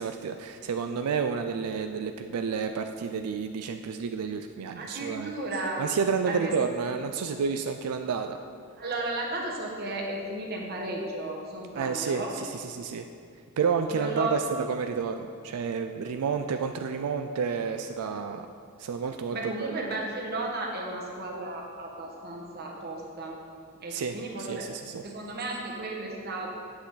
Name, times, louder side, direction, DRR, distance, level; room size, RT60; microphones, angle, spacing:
voice 1, 0.0-5.3 5.8-8.4 11.7-13.0 13.6-18.5 18.8-19.8 23.9-24.1 24.5-25.0, right 5 dB, 85° right, 7 dB, 0.4 m, -30 dB
voice 2, 4.8-5.8 6.3-6.5 8.8-12.3 13.9-14.4 19.3-23.4 23.8-24.6 25.0-26.5, right 2 dB, 45° right, -1 dB, 1.2 m, -34 dB
8.6 x 7.7 x 4.0 m, 2.4 s
head